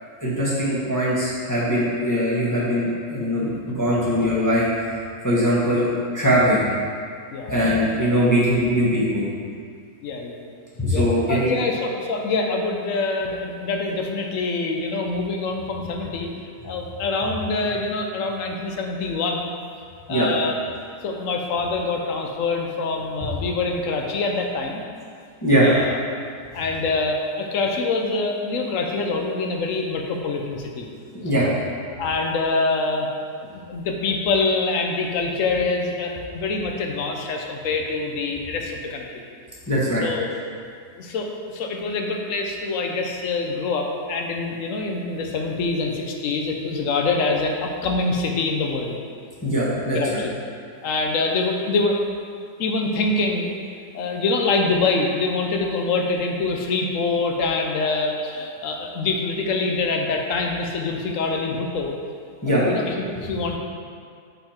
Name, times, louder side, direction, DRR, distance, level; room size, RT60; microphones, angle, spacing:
voice 1, 0.2-4.9 5.2-6.6 7.5-9.3 10.8-11.5 20.1-20.3 25.4-25.7 31.1-31.5 39.7-40.0 49.4-50.2 62.4-62.6, equal, 15° left, -9 dB, 1.1 m, -21 dB
voice 2, 7.3-7.7 10.0-10.5 10.9-11.0 11.3-19.5 20.1-20.6 21.0-24.8 25.6-26.0 26.5-30.9 32.0-33.1 33.5-39.2 40.0-40.3 40.9-49.0 49.9-50.3 50.8-52.0 52.6-53.5 53.9-61.9 62.6-63.6, left 3 dB, 60° left, 2 dB, 1.0 m, -25 dB
5.6 x 5.6 x 4.4 m, 2.2 s
omnidirectional pair, 1.7 m